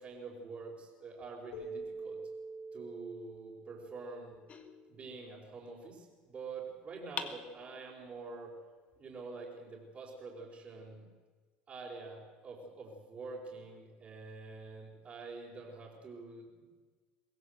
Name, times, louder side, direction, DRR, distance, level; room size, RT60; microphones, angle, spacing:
voice 1, 0.0-2.2 2.7-4.4 4.9-8.5 9.0-11.1 11.7-16.7, right 4 dB, 35° right, -7 dB, 4.6 m, -46 dB
Keyboard (musical), 1.5-4.7, right 3 dB, 80° left, 3.5 m, -46 dB
sound 1, 4.5-5.6 7.2-8.2, left 6 dB, 35° left, 1.7 m, -45 dB
23.0 x 16.0 x 8.1 m, 1.4 s
supercardioid pair, 105°, 4 cm